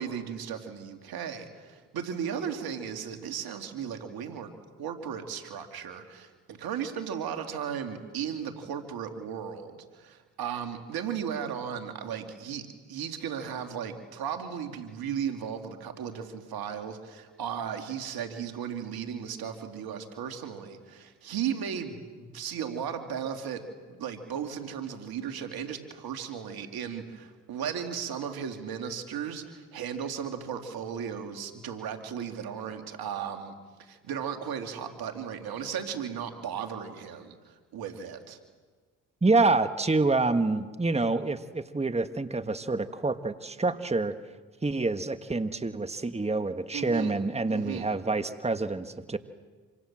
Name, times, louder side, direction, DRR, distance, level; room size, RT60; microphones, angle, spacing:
voice 1, 0.0-4.5 4.8-23.6 24.0-38.4 46.7-47.2 47.5-47.9, right 8 dB, 75° right, 5 dB, 2.8 m, -36 dB
voice 2, 39.2-44.1 44.6-49.2, right 3 dB, 15° right, 10 dB, 1.5 m, -27 dB
27.0 x 26.0 x 7.5 m, 1.4 s
supercardioid pair, 55°, 37 cm